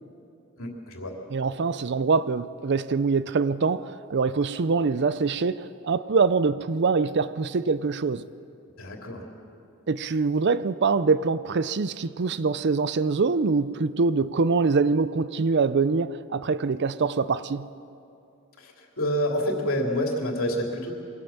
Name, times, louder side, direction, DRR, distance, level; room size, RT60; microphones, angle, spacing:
voice 1, 0.6-1.1 8.8-9.3 18.6-20.9, equal, 70° left, 3.1 m, -28 dB
voice 2, 1.3-8.3 9.9-17.7, right 4 dB, 55° right, 0.5 m, -24 dB
23.5 x 16.5 x 7.2 m
head